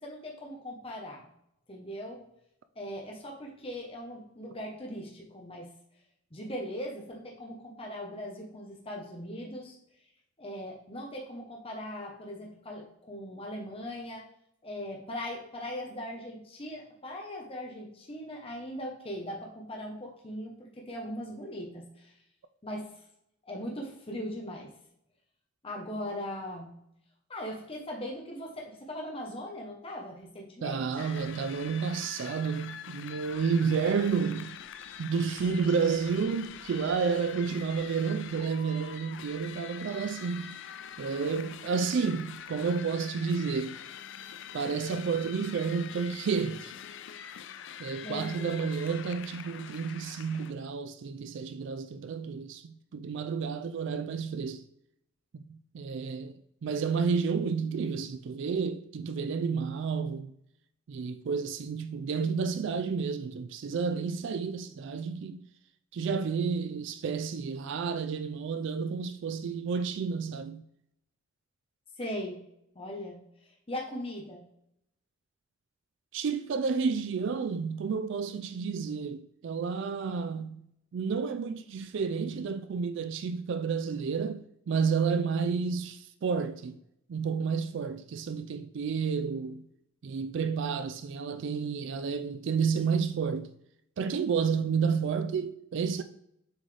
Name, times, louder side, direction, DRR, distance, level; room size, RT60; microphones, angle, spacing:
voice 1, 0.0-1.3 1.7-2.2 2.8-5.7 6.3-9.7 10.4-14.3 14.6-22.1 22.6-22.9 23.5-24.7 25.6-26.8 27.3-31.1 48.0-48.8 72.0-72.4 72.7-73.2 73.7-74.4, equal, 30° left, 0.9 m, -39 dB
voice 2, 30.6-34.6 35.0-40.6 41.0-43.8 44.5-46.7 47.8-54.6 55.3-60.3 60.9-65.4 65.9-70.6 76.1-80.6 80.9-86.8 87.1-89.7 90.0-93.5 94.0-96.0, right 5 dB, 60° right, 0.3 m, -31 dB
sound 1, 31.0-50.5, left 9 dB, 60° left, 0.3 m, -45 dB
7.1 x 3.9 x 3.3 m
head